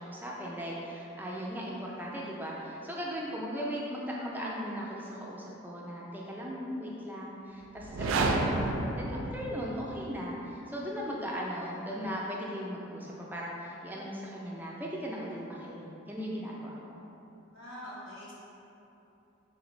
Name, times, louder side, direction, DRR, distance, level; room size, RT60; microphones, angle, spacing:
voice 1, 0.0-17.0, equal, 10° right, -4 dB, 0.3 m, -38 dB
sound 1, 7.8-9.9, right 2 dB, 85° right, 0.3 m, -30 dB
voice 2, 17.5-18.3, equal, 80° left, -7 dB, 1.1 m, -44 dB
3.4 x 3.2 x 3.0 m, 2.9 s
head